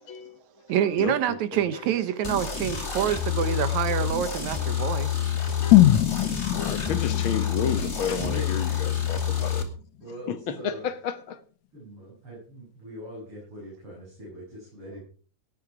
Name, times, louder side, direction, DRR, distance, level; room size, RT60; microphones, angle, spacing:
voice 1, 0.1-0.4 1.0-1.4 2.7-3.1 3.4-3.6 3.9-4.0 4.6-4.9 5.6-9.6 10.3-11.4, left 7 dB, 55° left, 1.7 m, -33 dB
voice 2, 0.7-5.3, right 10 dB, 75° right, 2.3 m, -27 dB
sound 1, 2.2-9.6, left 8 dB, 25° left, 2.5 m, -28 dB
sound 2, 5.7-9.7 10.0-10.1, left 14 dB, 80° left, 2.1 m, -23 dB
voice 3, 8.2-8.8 10.0-10.9 11.7-15.0, equal, 45° right, 8.4 m, -40 dB
18.0 x 11.0 x 4.9 m
omnidirectional pair, 3.4 m